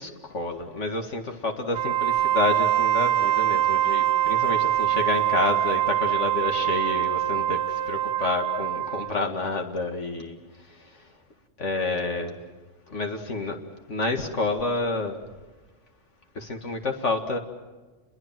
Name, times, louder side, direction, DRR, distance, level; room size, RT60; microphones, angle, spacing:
voice 1, 0.0-10.4 11.6-12.4 12.9-13.6 13.9-15.2 16.4-17.4, left 3 dB, 75° left, 4 dB, 2.4 m, -29 dB
Wind instrument woodwind instrument, 1.7-9.2, right 12 dB, 40° right, 1.6 m, -24 dB
28.5 x 23.0 x 7.6 m, 1.2 s
omnidirectional pair, 1.3 m